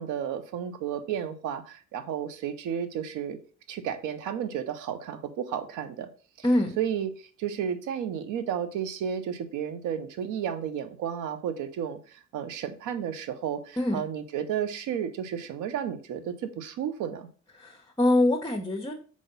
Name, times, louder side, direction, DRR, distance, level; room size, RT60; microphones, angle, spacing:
voice 1, 0.0-3.4 3.7-6.1 6.8-17.3, right 8 dB, 90° right, 0.8 m, -32 dB
voice 2, 6.4-6.8 13.8-14.0 17.5-18.9, left 1 dB, 10° left, 1.0 m, -24 dB
4.8 x 4.1 x 5.2 m
cardioid pair, 90°, 30 cm